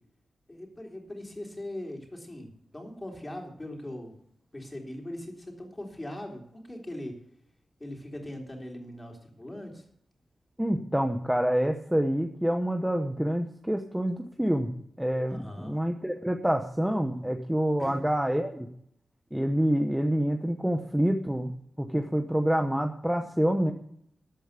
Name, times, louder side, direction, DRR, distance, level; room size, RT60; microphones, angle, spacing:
voice 1, 0.5-2.5 2.7-4.1 4.5-7.2 7.8-9.8 15.3-15.8 17.8-18.0, left 1 dB, 15° left, 1 dB, 3.5 m, -40 dB
voice 2, 10.6-14.7 15.0-18.7 19.3-21.5 21.8-23.7, equal, 5° right, 4 dB, 1.0 m, -27 dB
13.5 x 8.5 x 6.7 m, 0.70 s
wide cardioid pair, 130°, 0 cm